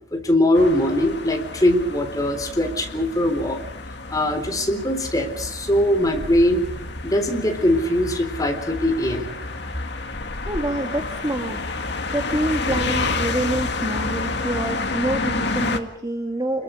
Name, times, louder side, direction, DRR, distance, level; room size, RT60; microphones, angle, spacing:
voice 1, 0.1-3.6 4.1-6.6 7.0-9.3, left 1 dB, 20° left, 5 dB, 3.8 m, -21 dB
sound 1, 0.5-15.8, left 3 dB, 60° left, 2.0 m, -29 dB
voice 2, 10.5-11.6 12.1-16.6, right 1 dB, 20° right, 4 dB, 2.0 m, -26 dB
29.0 x 22.0 x 5.1 m, 0.82 s
head